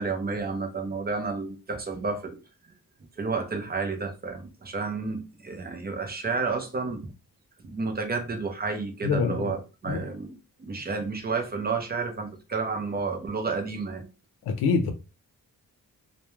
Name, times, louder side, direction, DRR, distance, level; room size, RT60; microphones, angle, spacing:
voice 1, 0.0-2.4 3.2-7.1 7.6-14.0, right 4 dB, 25° right, 0.5 m, -31 dB
voice 2, 9.0-9.6 9.9-10.1 14.4-14.9, left 5 dB, 90° left, 0.5 m, -25 dB
2.2 x 2.1 x 3.0 m
wide cardioid pair, 135°, 37 cm